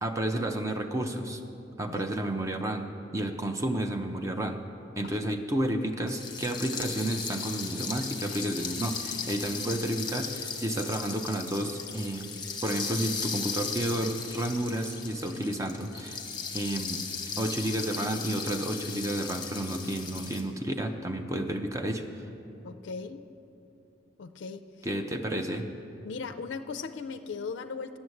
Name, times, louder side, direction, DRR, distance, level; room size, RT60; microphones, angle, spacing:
voice 1, 0.0-1.4 1.8-4.6 5.0-12.3 12.6-16.2 16.5-17.1 17.4-22.3 24.8-25.7, right 1 dB, 15° right, 5 dB, 0.6 m, -31 dB
sound 1, 6.1-20.4, left 5 dB, 25° left, 1.0 m, -37 dB
voice 2, 22.6-23.2 24.2-24.6 26.0-28.0, left 5 dB, 70° left, 7 dB, 0.4 m, -38 dB
9.5 x 7.1 x 7.7 m, 2.8 s
head